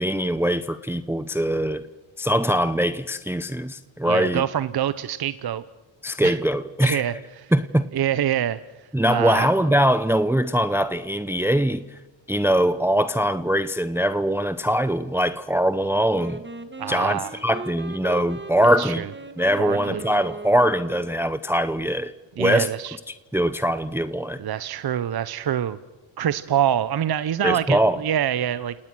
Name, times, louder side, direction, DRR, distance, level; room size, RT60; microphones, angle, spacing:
voice 1, 0.0-1.8 2.2-4.4 6.0-7.2 7.5-7.8 8.9-11.8 12.3-16.4 16.9-19.0 19.4-22.1 22.4-22.7 23.1-24.4 27.4-28.0, equal, 5° right, 13 dB, 0.8 m, -22 dB
voice 2, 4.1-5.6 6.2-6.4 6.8-7.5 7.9-8.6 9.1-9.5 16.8-17.3 18.6-19.1 19.6-20.0 22.4-23.0 24.4-25.8 26.2-28.7, right 10 dB, 50° right, 15 dB, 0.9 m, -25 dB
Wind instrument woodwind instrument, 16.1-21.3, right 3 dB, 20° right, 1.9 m, -37 dB
30.0 x 19.0 x 6.2 m, 1.2 s
cardioid pair, 70°, 48 cm